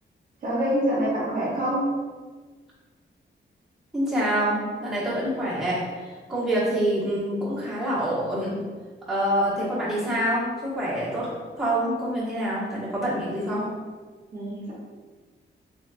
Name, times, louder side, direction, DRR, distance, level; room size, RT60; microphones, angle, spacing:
voice 1, 0.4-1.9 14.3-14.7, equal, 45° right, -6 dB, 0.7 m, -25 dB
voice 2, 3.9-8.5 9.1-11.3 11.6-13.6, right 1 dB, ahead, -10 dB, 1.3 m, -26 dB
4.1 x 3.1 x 2.4 m, 1.4 s
wide cardioid pair, 165°, 20 cm